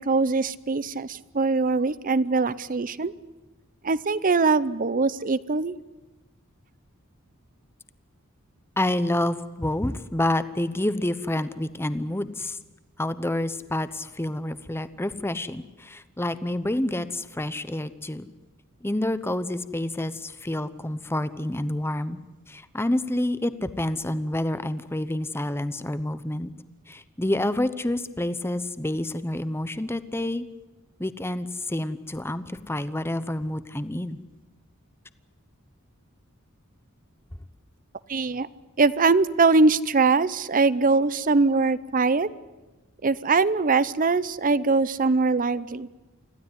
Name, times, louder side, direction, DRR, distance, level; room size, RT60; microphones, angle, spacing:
voice 1, 0.0-3.1 3.8-5.8 38.1-38.5 38.8-42.3 43.0-45.9, right 4 dB, 40° right, 17 dB, 0.7 m, -22 dB
voice 2, 8.8-12.6 13.0-18.3 18.8-22.2 22.5-26.5 26.9-30.5 31.0-34.2, left 1 dB, 10° left, 13 dB, 0.9 m, -28 dB
25.5 x 15.5 x 9.8 m, 1.1 s
head